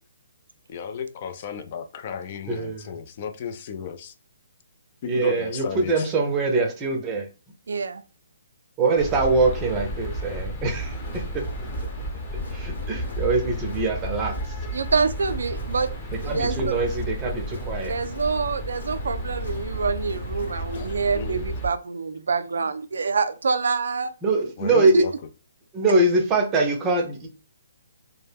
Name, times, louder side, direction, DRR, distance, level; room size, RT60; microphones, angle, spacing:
voice 1, 0.7-4.1 5.0-6.1 18.6-18.8 20.5-21.4 24.6-25.1, left 7 dB, 40° left, 0.4 m, -35 dB
voice 2, 2.5-2.9 5.1-7.3 8.8-11.5 12.5-14.5 16.1-18.0 24.2-25.0 25.7-27.3, right 3 dB, 20° right, 0.5 m, -23 dB
voice 3, 7.7-8.0 14.7-15.9 16.2-16.7 17.9-24.1 24.9-25.0, right 4 dB, 75° right, 0.3 m, -26 dB
sound 1, 9.0-21.7, equal, 25° left, 0.8 m, -32 dB
Crowd, 11.0-21.3, left 1 dB, 85° left, 1.0 m, -44 dB
2.2 x 2.0 x 3.3 m
hypercardioid pair, 145°, 0 cm